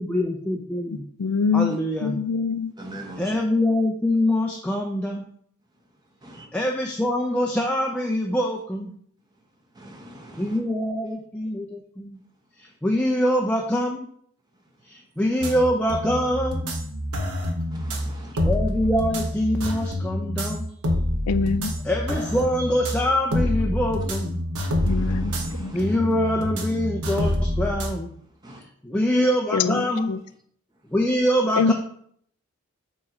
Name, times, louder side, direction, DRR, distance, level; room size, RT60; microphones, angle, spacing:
voice 1, 0.0-1.1 1.5-2.2 3.2-5.2 6.5-8.9 10.3-12.2 12.6-14.1 14.8-16.8 18.4-20.7 21.8-24.4 25.7-28.1 28.5-30.2 30.9-31.7, left 1 dB, 5° left, 1 dB, 0.4 m, -24 dB
voice 2, 1.2-2.7 21.3-21.7 24.9-26.2 29.5-30.2 31.6-31.7, left 5 dB, 85° left, 13 dB, 0.4 m, -25 dB
voice 3, 2.8-3.4 6.2-6.5 9.8-10.6 17.7-18.4 24.8-25.9 28.4-28.6, right 1 dB, 20° right, 1 dB, 1.0 m, -41 dB
sound 1, 15.4-27.9, left 1 dB, 90° right, 1.1 m, -27 dB
7.2 x 3.1 x 4.9 m, 0.64 s
head